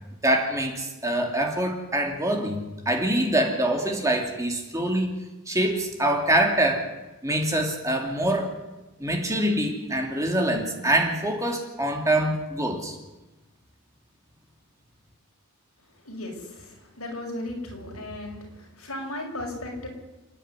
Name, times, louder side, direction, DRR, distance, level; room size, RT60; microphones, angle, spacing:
voice 1, 0.2-6.9 7.2-8.5 9.0-13.0, right 1 dB, 15° right, 2 dB, 2.7 m, -25 dB
voice 2, 16.0-19.9, left 1 dB, 75° left, 0 dB, 6.4 m, -36 dB
29.5 x 10.0 x 9.8 m, 1.1 s
head